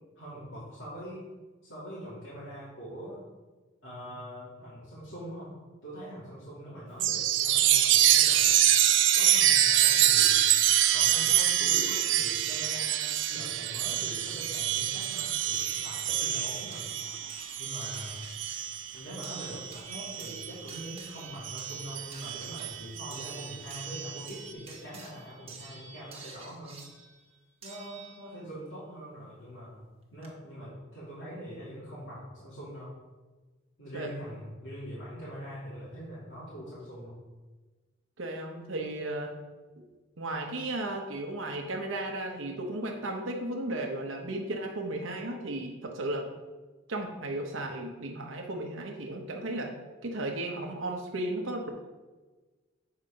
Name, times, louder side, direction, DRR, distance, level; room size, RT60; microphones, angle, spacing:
voice 1, 0.2-1.3 1.6-3.2 3.8-5.5 5.8-8.7 9.1-10.4 10.9-16.9 17.6-18.3 18.9-26.8 27.6-32.9 33.8-37.2, equal, 75° left, -9 dB, 2.5 m, -43 dB
Chime, 7.0-21.0 21.4-24.3, right 11 dB, 65° right, 0.5 m, -26 dB
sound 1, 14.1-14.2 15.5-28.5 29.8-29.9 30.2-30.3, right 4 dB, 30° right, 1.1 m, -49 dB
voice 2, 38.2-39.4 40.2-46.3 46.9-49.7 50.0-51.7, right 1 dB, 80° right, 2 dB, 0.9 m, -35 dB
7.3 x 4.8 x 5.1 m, 1.3 s
head